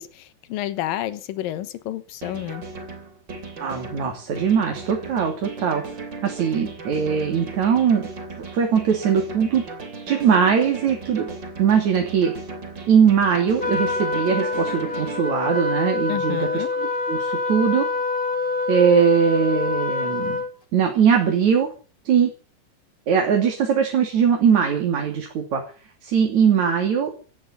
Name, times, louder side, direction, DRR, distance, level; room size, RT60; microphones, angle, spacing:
voice 1, 0.0-2.6 16.1-16.7, left 13 dB, 90° left, 14 dB, 2.8 m, -30 dB
sound 1, 2.2-15.2, right 3 dB, 30° right, 3.6 m, -37 dB
voice 2, 3.6-5.8 6.2-8.1 8.5-9.7 10.1-11.3 11.6-12.3 12.9-17.9 18.7-20.4 20.7-21.7 22.1-22.3 23.1-25.6 26.0-27.1, right 7 dB, 55° right, 3 dB, 4.0 m, -20 dB
Trumpet, 13.6-20.5, left 3 dB, 15° left, 2.1 m, -25 dB
17.5 x 14.0 x 5.7 m, 0.39 s
omnidirectional pair, 4.0 m